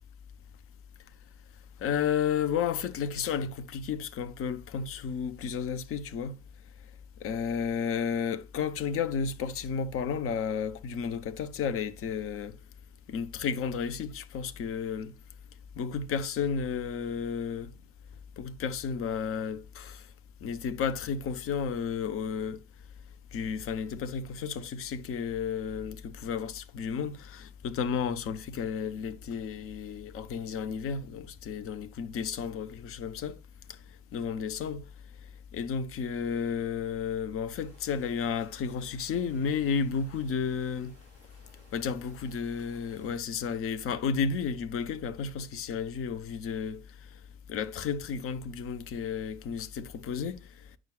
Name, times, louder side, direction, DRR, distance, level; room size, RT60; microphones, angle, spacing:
voice 1, 1.8-6.4 7.2-12.6 13.1-15.1 15.7-17.7 18.4-20.0 20.4-22.6 23.3-33.4 33.7-33.8 34.1-34.8 35.5-40.9 41.7-46.8 47.5-50.4, left 6 dB, 45° left, 0.8 m, -32 dB
sound 1, 37.5-43.1, equal, 80° left, 4.4 m, -60 dB
9.1 x 6.1 x 2.3 m
figure-of-eight pair, 55°, 32 cm